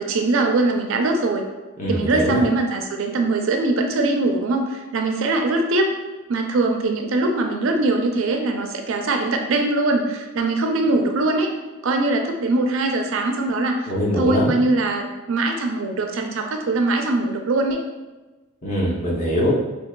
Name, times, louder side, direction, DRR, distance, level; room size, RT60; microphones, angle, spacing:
voice 1, 0.0-1.4 1.9-5.9 6.3-11.5 11.8-17.8, right 2 dB, 70° right, 4 dB, 0.4 m, -22 dB
voice 2, 1.8-2.4 13.9-14.5 18.6-19.5, equal, 35° left, -5 dB, 0.8 m, -22 dB
4.6 x 2.7 x 2.2 m, 1.1 s
head